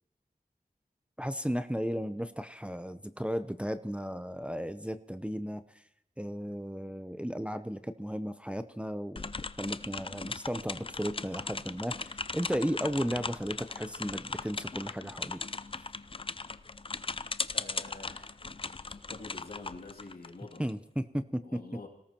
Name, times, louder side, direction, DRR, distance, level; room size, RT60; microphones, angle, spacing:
voice 1, 1.2-5.8 6.2-9.3 9.6-15.4 20.6-21.6, equal, 5° right, 10 dB, 0.7 m, -35 dB
sound 1, 9.2-20.7, left 3 dB, 35° left, 0.5 m, -38 dB
voice 2, 17.5-18.3 18.7-20.6 21.4-21.9, left 3 dB, 70° left, 1 dB, 2.7 m, -47 dB
25.5 x 18.0 x 3.0 m, 0.80 s
wide cardioid pair, 50°, 16 cm